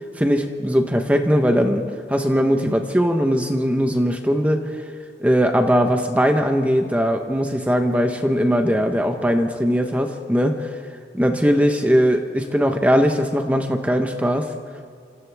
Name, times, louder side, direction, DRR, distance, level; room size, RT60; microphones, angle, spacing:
voice 1, 0.2-4.8 5.2-10.7 11.1-14.5, equal, 10° right, 4 dB, 1.0 m, -20 dB
29.0 x 26.5 x 3.5 m, 2.2 s
head